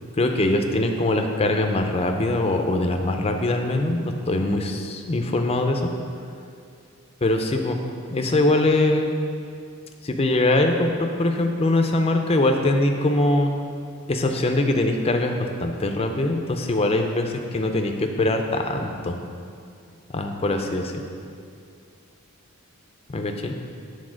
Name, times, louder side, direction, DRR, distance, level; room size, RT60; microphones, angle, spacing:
voice 1, 0.2-5.9 7.2-7.8 8.1-9.1 10.0-13.5 14.1-19.2 20.1-21.0 23.1-23.6, left 2 dB, 30° left, 4 dB, 0.5 m, -22 dB
8.5 x 4.1 x 6.2 m, 2.4 s
head